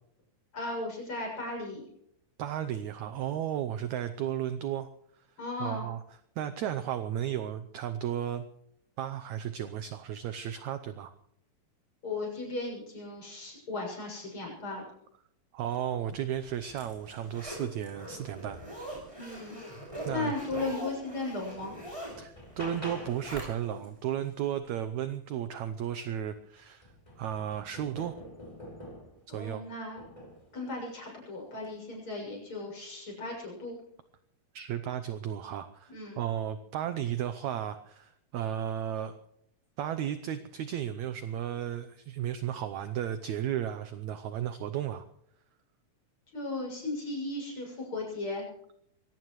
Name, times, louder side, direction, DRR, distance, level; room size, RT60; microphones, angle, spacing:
voice 1, 0.5-1.8 5.4-5.9 12.0-14.8 19.2-19.6 20.1-21.7 29.3-30.0 30.5-33.8 35.9-36.2 46.3-48.5, left 2 dB, 35° left, 0 dB, 7.6 m, -36 dB
voice 2, 2.4-4.9 5.1-5.3 5.6-6.0 6.4-8.5 9.0-11.1 15.5-18.6 20.0-20.3 22.2-26.9 27.2-28.1 29.3-29.6 34.5-39.2 39.8-45.0, right 10 dB, 75° right, 11 dB, 1.7 m, -34 dB
Zipper (clothing), 16.3-23.9 24.3-24.4, equal, 10° right, 6.8 m, -43 dB
sound 1, 21.0-21.1 21.6-23.4 25.8-25.9 26.3-29.3 30.0-30.5 31.5-31.8, equal, 10° left, 3.5 m, -46 dB
23.5 x 18.0 x 3.2 m, 0.72 s
omnidirectional pair, 4.1 m